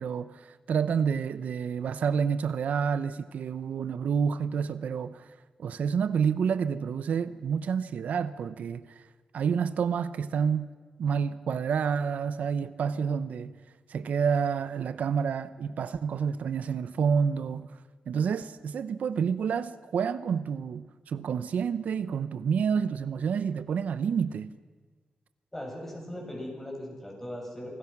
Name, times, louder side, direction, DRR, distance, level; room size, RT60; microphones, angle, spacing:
voice 1, 0.0-5.3 5.6-9.0 9.3-10.7 11.0-13.5 13.9-17.7 18.1-24.5, right 6 dB, 85° right, 0.7 m, -29 dB
voice 2, 25.5-27.8, left 1 dB, 15° left, 7.3 m, -39 dB
27.0 x 19.5 x 6.0 m
wide cardioid pair, 120°, 3 cm